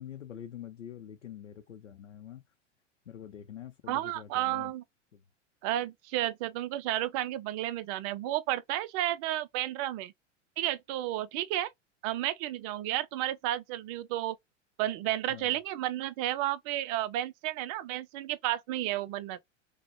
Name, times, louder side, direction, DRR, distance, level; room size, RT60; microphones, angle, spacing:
voice 1, 0.0-2.4 3.1-4.7 5.1-5.2 15.3-15.6, left 10 dB, 75° left, 0.7 m, -45 dB
voice 2, 3.9-4.8 5.6-10.1 10.6-11.7 12.0-14.4 14.8-19.4, right 14 dB, 30° right, 0.4 m, -32 dB
5.8 x 2.2 x 3.0 m
figure-of-eight pair, 90°, 36 cm